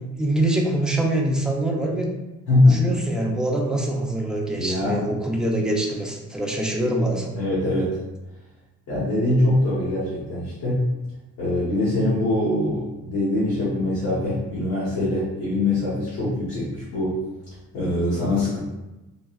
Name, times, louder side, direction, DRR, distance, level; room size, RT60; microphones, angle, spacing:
voice 1, 0.0-2.1 2.7-7.4, right 1 dB, ahead, -1 dB, 0.5 m, -24 dB
voice 2, 2.5-2.9 4.5-5.0 7.4-8.0 8.9-10.8 11.4-17.2 17.7-18.6, left 2 dB, 85° left, -10 dB, 1.3 m, -22 dB
3.7 x 2.2 x 2.3 m, 1.0 s
cardioid pair, 90°, 30 cm